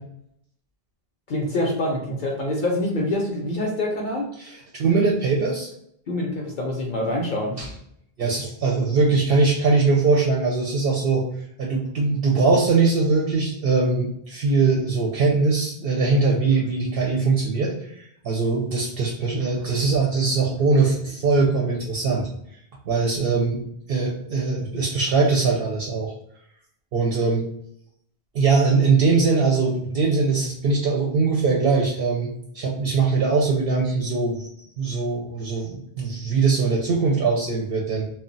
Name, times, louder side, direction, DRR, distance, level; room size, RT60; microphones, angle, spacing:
voice 1, 1.3-4.3 6.1-7.6, left 1 dB, 60° left, 0 dB, 0.6 m, -25 dB
voice 2, 4.4-5.7 7.6-7.7 8.2-11.2 11.6-22.3 22.9-23.6 23.9-26.1 26.9-27.4 28.3-34.5 34.8-38.0, right 4 dB, 70° right, -1 dB, 0.7 m, -21 dB
2.3 x 2.0 x 3.8 m, 0.71 s
omnidirectional pair, 1.0 m